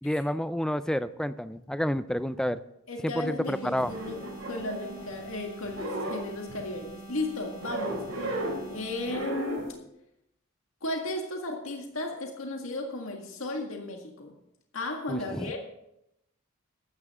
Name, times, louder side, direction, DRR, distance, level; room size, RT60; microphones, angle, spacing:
voice 1, 0.0-2.6 3.2-3.4 3.7-3.9 15.1-15.5, equal, 5° left, 14 dB, 0.4 m, -29 dB
voice 2, 2.9-9.7 10.8-14.3 14.7-15.6, left 2 dB, 85° left, 2 dB, 1.8 m, -35 dB
sound 1, 3.4-9.3, right 2 dB, 45° left, 3.6 m, -46 dB
sound 2, 3.8-5.3 5.6-6.9 7.6-8.7 9.0-9.7, right 1 dB, 90° right, 4.0 m, -35 dB
14.5 x 12.0 x 3.6 m, 0.82 s
head